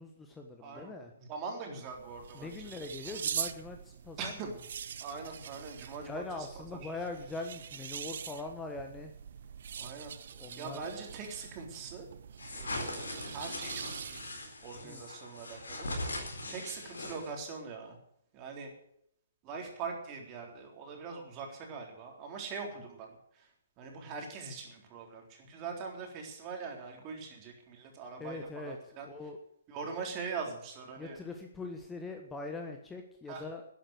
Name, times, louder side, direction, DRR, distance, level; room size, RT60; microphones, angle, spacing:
voice 1, 0.0-1.1 2.3-4.3 6.0-9.1 10.4-10.8 14.8-15.0 28.2-29.4 31.0-33.6, left 3 dB, 10° left, 4 dB, 1.3 m, -42 dB
voice 2, 0.6-0.9 1.2-2.5 3.1-3.2 4.2-4.5 5.0-6.5 6.8-7.0 9.8-10.2 10.6-12.1 12.5-14.2 14.6-16.1 16.5-18.0 18.3-18.7 19.4-23.5 23.8-29.1 29.7-31.2 33.3-33.4, right 5 dB, 30° right, 2 dB, 3.7 m, -42 dB
sound 1, 1.8-14.5, right 8 dB, 55° right, 0.9 m, -43 dB
sound 2, 12.4-17.5, left 2 dB, 70° left, 4.1 m, -40 dB
12.0 x 10.0 x 8.1 m, 0.71 s
figure-of-eight pair, 125°, 0 cm